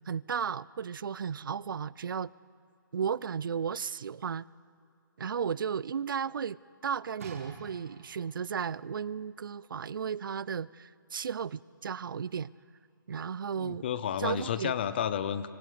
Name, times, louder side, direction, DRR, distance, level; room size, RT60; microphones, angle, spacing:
voice 1, 0.1-2.3 2.9-4.5 5.2-6.6 6.8-12.5 13.1-13.8 14.2-14.7, right 7 dB, 70° right, 22 dB, 0.4 m, -34 dB
sound 1, 7.2-8.5 9.2-9.3, right 5 dB, 40° right, 2.3 m, -47 dB
voice 2, 13.6-15.5, left 9 dB, 30° left, 15 dB, 0.7 m, -31 dB
25.0 x 24.5 x 5.0 m, 2.6 s
hypercardioid pair, 170°, 12 cm